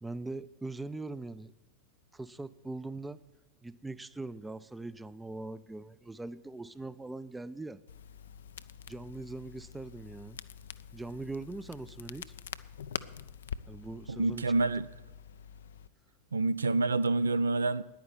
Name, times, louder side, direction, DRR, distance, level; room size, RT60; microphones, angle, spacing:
voice 1, 0.0-1.5 2.1-3.2 3.6-7.8 8.9-10.4 10.9-12.3 13.7-14.5, right 2 dB, 10° right, 0.4 m, -41 dB
Crackle, 7.9-15.9, left 8 dB, 65° left, 0.4 m, -45 dB
voice 2, 14.1-14.9 16.3-17.8, right 3 dB, 75° right, 0.4 m, -27 dB
10.0 x 9.5 x 8.4 m
figure-of-eight pair, 90°, 0 cm